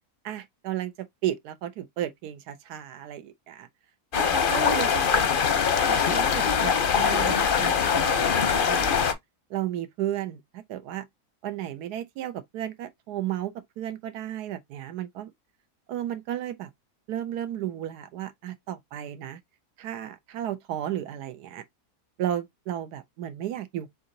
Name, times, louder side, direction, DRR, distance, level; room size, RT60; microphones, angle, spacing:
voice 1, 0.2-3.7 4.1-5.3 5.9-9.2 9.5-11.1 11.4-15.3 15.9-16.7 17.1-19.4 19.8-21.6 22.2-23.9, right 12 dB, 85° right, 1.2 m, -34 dB
sound 1, 4.1-9.1, left 6 dB, 50° left, 0.6 m, -23 dB
4.8 x 3.9 x 2.6 m
omnidirectional pair, 1.6 m